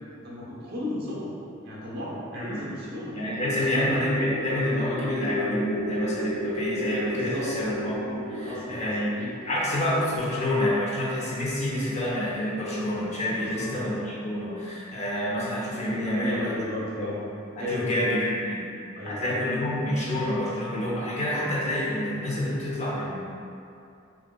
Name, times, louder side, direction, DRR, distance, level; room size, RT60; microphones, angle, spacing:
voice 1, 0.0-1.3 1.6-3.2 3.5-3.8 7.1-7.5 8.4-9.0 13.4-13.7 15.9-17.2 17.5-18.0 18.9-19.4, left 1 dB, 55° right, -6 dB, 0.9 m, -34 dB
sound 1, 2.9-11.0, equal, 65° left, 1.0 m, -35 dB
voice 2, 3.1-16.6 17.0-17.1 17.6-18.7 19.0-23.3, left 1 dB, 35° left, -5 dB, 0.7 m, -28 dB
6.0 x 2.4 x 2.2 m, 2.5 s
head